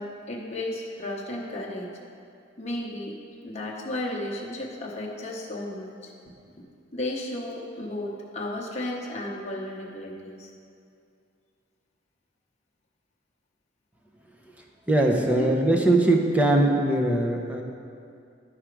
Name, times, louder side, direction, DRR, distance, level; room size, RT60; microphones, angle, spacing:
voice 1, 0.0-1.9 2.6-6.6 6.9-10.5 15.2-15.5, left 1 dB, 35° left, -3 dB, 0.9 m, -34 dB
voice 2, 14.9-17.6, right 1 dB, 5° right, 1 dB, 0.6 m, -21 dB
11.5 x 4.9 x 4.6 m, 2.5 s
head